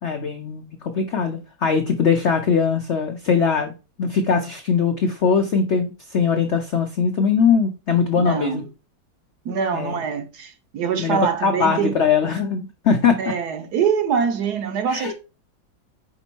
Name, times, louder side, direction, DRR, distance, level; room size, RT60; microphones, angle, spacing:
voice 1, 0.0-3.7 4.0-8.6 9.7-10.0 11.0-13.3 14.9-15.1, left 6 dB, 80° left, 0.6 m, -21 dB
voice 2, 8.2-8.6 9.4-11.9 13.2-15.1, right 7 dB, 65° right, 1.2 m, -24 dB
5.3 x 4.0 x 4.4 m
omnidirectional pair, 2.1 m